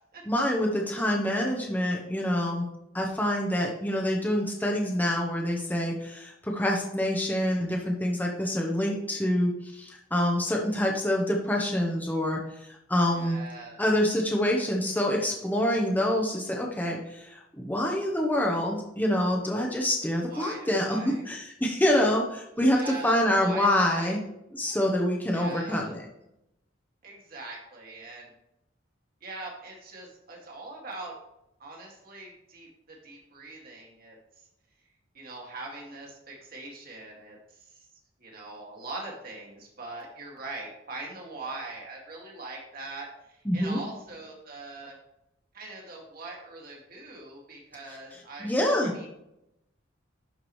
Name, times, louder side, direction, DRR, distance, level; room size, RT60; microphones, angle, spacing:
voice 1, 0.3-2.7 2.9-13.4 13.8-24.2 24.6-26.0 43.5-43.8 48.4-49.1, left 1 dB, 10° left, -1 dB, 0.9 m, -26 dB
voice 2, 13.1-13.8 20.3-21.2 22.7-24.2 25.3-25.9 27.0-28.3 29.2-31.1 31.6-34.2 35.1-37.9 38.2-45.0 45.5-48.5 48.8-49.1, right 2 dB, 50° right, -1 dB, 2.1 m, -42 dB
11.5 x 4.8 x 3.1 m, 0.84 s
head